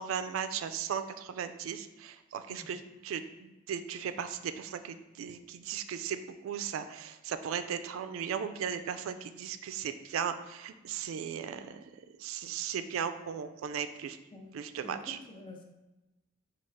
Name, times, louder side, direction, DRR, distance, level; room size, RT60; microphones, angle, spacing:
voice 1, 0.0-11.8 12.2-14.2 14.5-15.2, right 7 dB, 85° right, 9 dB, 0.3 m, -37 dB
voice 2, 14.8-15.6, left 2 dB, 25° left, 2 dB, 0.5 m, -48 dB
4.4 x 2.3 x 4.7 m, 1.0 s
head